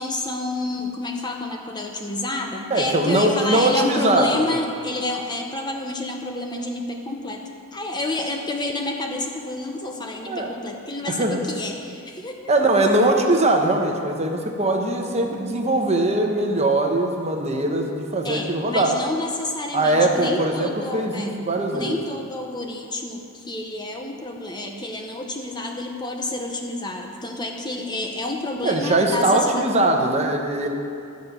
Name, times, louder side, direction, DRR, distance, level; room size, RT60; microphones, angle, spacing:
voice 1, 0.0-7.4 7.7-12.4 18.2-21.4 21.7-29.7, left 2 dB, 20° left, 2 dB, 0.7 m, -29 dB
voice 2, 2.7-4.6 10.3-10.5 11.1-11.4 12.5-18.9 19.7-22.0 28.6-30.7, right 2 dB, 30° right, 2 dB, 1.0 m, -21 dB
12.0 x 5.3 x 8.2 m, 2.4 s
head